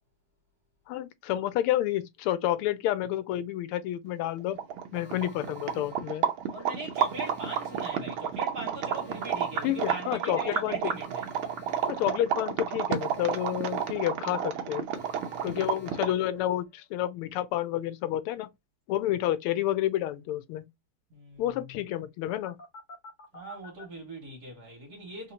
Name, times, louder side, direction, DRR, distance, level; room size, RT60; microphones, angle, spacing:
voice 1, 0.9-4.6 4.9-6.2 9.6-10.9 11.8-14.9 15.4-18.5 18.9-20.7 21.4-22.6, left 13 dB, 85° left, 1.5 m, -29 dB
sound 1, 4.3-4.4 4.5-16.3, right 8 dB, 80° right, 1.5 m, -31 dB
Alarm, 4.9-16.8 22.3-23.8, equal, 45° left, 1.8 m, -52 dB
voice 2, 6.5-11.3 21.1-21.4 23.3-25.3, right 1 dB, 50° right, 1.9 m, -40 dB
3.8 x 2.8 x 2.8 m
omnidirectional pair, 2.4 m